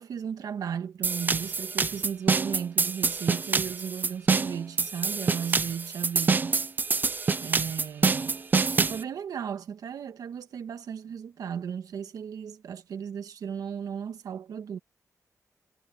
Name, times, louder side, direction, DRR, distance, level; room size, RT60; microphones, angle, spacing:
voice 1, 0.0-6.6 7.4-8.4 8.8-14.8, right 7 dB, 85° right, 1.7 m, -35 dB
sound 1, 1.0-9.0, right 4 dB, 30° right, 0.5 m, -26 dB
wide cardioid pair, 135°, 6 cm